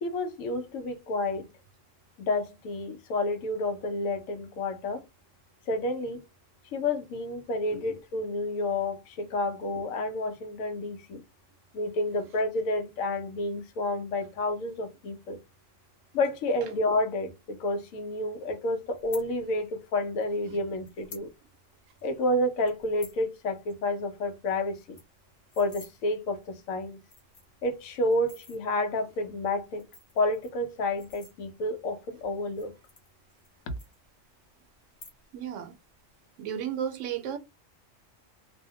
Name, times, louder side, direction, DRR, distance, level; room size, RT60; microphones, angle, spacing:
voice 1, 0.0-1.5 2.2-5.0 5.7-6.2 6.7-11.2 11.7-15.4 16.1-21.3 22.0-25.0 25.6-27.0 27.6-29.8 30.2-32.7, left 2 dB, 90° left, 1.1 m, -30 dB
sound 1, 19.0-19.3 20.2-20.3 20.8-21.3 21.6-21.7 22.0-22.2 22.7-23.2 23.6-23.7 24.0-24.1 24.4-24.5 24.8-25.9 26.6-26.7 27.0-27.6 28.1-28.6 29.6-31.8 32.4-33.5 33.8-34.4 34.8-35.4 35.7-36.1, left 3 dB, 45° left, 1.0 m, -50 dB
voice 2, 35.3-35.7 36.4-37.4, right 9 dB, 75° right, 0.9 m, -34 dB
2.6 x 2.1 x 2.7 m
omnidirectional pair, 1.4 m